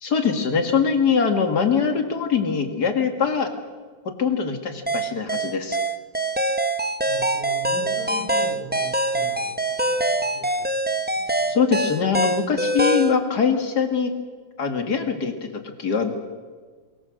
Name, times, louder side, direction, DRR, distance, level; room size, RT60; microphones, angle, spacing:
voice 1, 0.0-3.5 4.1-5.8 11.5-14.1 14.6-16.1, left 6 dB, 60° left, 5 dB, 2.7 m, -23 dB
sound 1, 4.9-13.2, right 1 dB, 15° right, 0.3 m, -24 dB
voice 2, 7.0-9.6 9.8-10.7 11.2-11.6, right 1 dB, 85° right, -6 dB, 8.2 m, -39 dB
23.0 x 21.5 x 6.5 m, 1.5 s
omnidirectional pair, 2.0 m